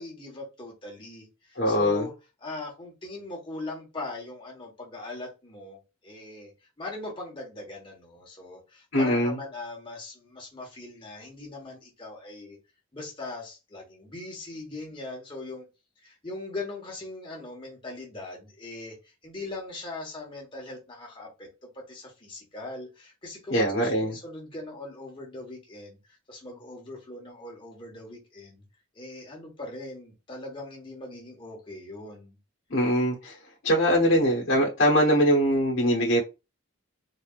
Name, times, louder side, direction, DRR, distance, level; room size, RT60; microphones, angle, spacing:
voice 1, 0.0-2.1 2.4-6.5 6.8-12.6 12.9-15.7 16.0-19.0 19.2-21.5 21.9-26.0 26.3-28.6 28.9-32.4, left 2 dB, 25° left, 1.4 m, -40 dB
voice 2, 1.6-2.1 8.9-9.4 23.5-24.1 32.7-33.4 33.6-36.2, equal, 70° left, 1.2 m, -22 dB
4.1 x 3.4 x 2.5 m
head